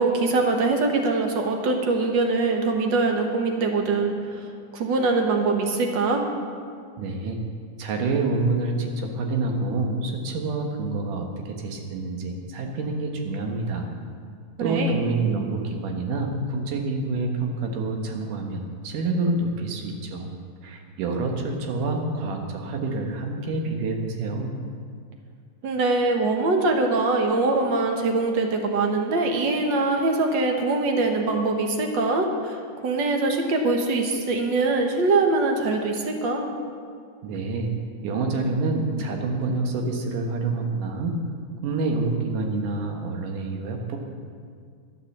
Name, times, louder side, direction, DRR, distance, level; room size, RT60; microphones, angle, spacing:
voice 1, 0.0-4.5 4.7-6.2 14.6-15.0 25.6-36.5, right 3 dB, 60° right, 3 dB, 1.2 m, -23 dB
voice 2, 7.0-7.4 7.8-13.9 14.6-20.3 20.6-24.5 37.2-37.7 38.0-41.2 41.6-44.0, right 3 dB, 80° right, 2 dB, 2.9 m, -27 dB
12.5 x 9.2 x 7.2 m, 2.1 s
omnidirectional pair, 3.6 m